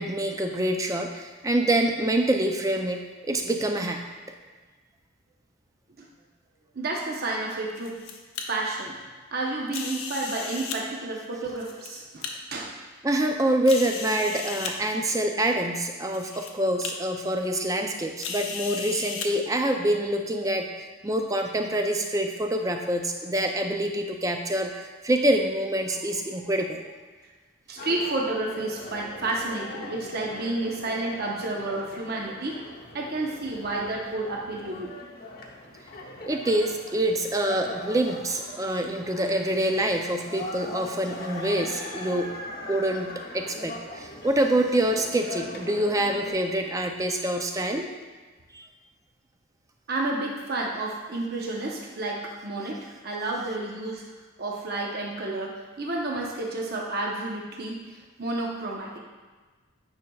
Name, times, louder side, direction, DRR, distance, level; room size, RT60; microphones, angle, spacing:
voice 1, 0.0-4.1 13.0-26.8 36.3-42.3 42.7-47.9 48.5-48.7, right 1 dB, 15° right, 4 dB, 0.4 m, -26 dB
voice 2, 6.7-7.9 8.5-8.9 9.3-12.7 26.3-26.4 27.7-32.6 32.9-34.9 49.9-54.0 54.4-59.0, right 2 dB, 50° right, -2 dB, 0.8 m, -31 dB
sound 1, 7.8-8.4 9.7-10.8 11.5-12.3 13.0-13.1 13.7-14.7 15.6-15.7 16.1-16.5 16.8-16.9 18.2-19.3, left 6 dB, 80° left, 0.7 m, -35 dB
sound 2, 27.8-46.3, left 1 dB, 45° left, 0.8 m, -40 dB
9.6 x 5.3 x 2.3 m, 1.3 s
head